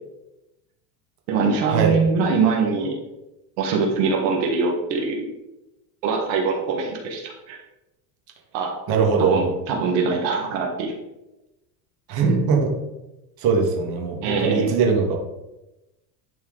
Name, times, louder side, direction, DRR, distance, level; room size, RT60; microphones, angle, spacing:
voice 1, 1.3-3.0 3.6-5.3 6.0-7.6 8.5-8.8 9.2-10.9 14.2-14.7, right 4 dB, 80° right, 1 dB, 1.6 m, -23 dB
voice 2, 8.9-9.4 12.1-12.7 13.4-15.1, right 5 dB, 50° right, 0 dB, 1.8 m, -20 dB
11.0 x 4.4 x 3.9 m, 0.97 s
cardioid pair, 145°, 49 cm